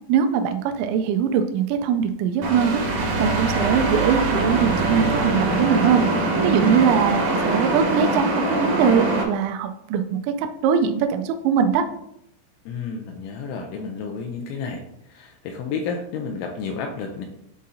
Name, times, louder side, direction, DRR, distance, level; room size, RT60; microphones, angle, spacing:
voice 1, 0.1-6.1 6.4-11.8, right 7 dB, 90° right, 7 dB, 2.5 m, -22 dB
sound 1, 2.4-9.2, right 2 dB, 70° right, 1.7 m, -23 dB
voice 2, 12.7-14.8 15.1-17.3, left 5 dB, 85° left, 2 dB, 2.8 m, -31 dB
11.0 x 3.7 x 2.7 m, 0.77 s
omnidirectional pair, 5.8 m